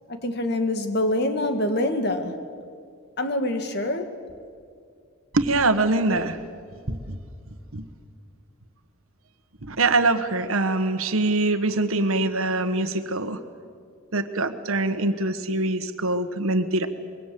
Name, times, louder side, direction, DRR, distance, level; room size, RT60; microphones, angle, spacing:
voice 1, 0.1-2.4 3.2-4.1, left 1 dB, 50° left, 7 dB, 1.9 m, -25 dB
voice 2, 5.3-6.4 6.9-7.2 7.7-7.9 9.6-13.4 14.1-16.9, right 2 dB, 75° right, 9 dB, 1.5 m, -23 dB
25.5 x 22.5 x 7.7 m, 2.3 s
head